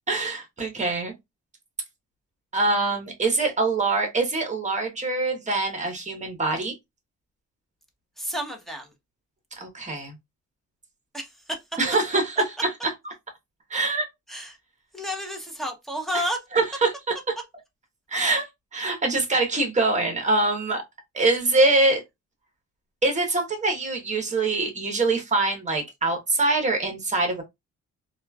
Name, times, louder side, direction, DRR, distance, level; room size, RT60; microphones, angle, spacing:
voice 1, 0.1-1.1 2.5-6.7 9.6-10.1 11.8-12.4 13.7-14.1 16.5-17.2 18.1-20.8 21.1-22.0 23.0-27.4, right 3 dB, 25° right, 1.1 m, -24 dB
voice 2, 8.2-8.9 11.1-11.6 14.3-14.6 14.9-16.4, equal, ahead, 0.9 m, -31 dB
3.0 x 2.4 x 2.3 m
cardioid pair, 90°, 30 cm